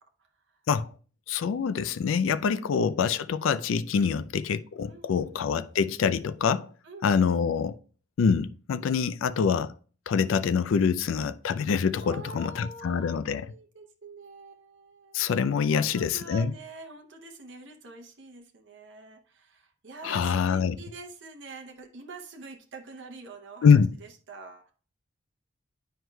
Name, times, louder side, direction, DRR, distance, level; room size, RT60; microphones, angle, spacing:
voice 1, 1.3-6.7 7.0-7.8 8.2-9.7 10.1-13.5 15.1-16.5 20.0-20.8 23.6-23.9, left 6 dB, 85° left, 0.3 m, -25 dB
voice 2, 4.9-5.7 6.8-7.3 12.0-15.3 15.7-24.7, right 2 dB, 65° right, 0.7 m, -46 dB
9.3 x 4.6 x 2.2 m
head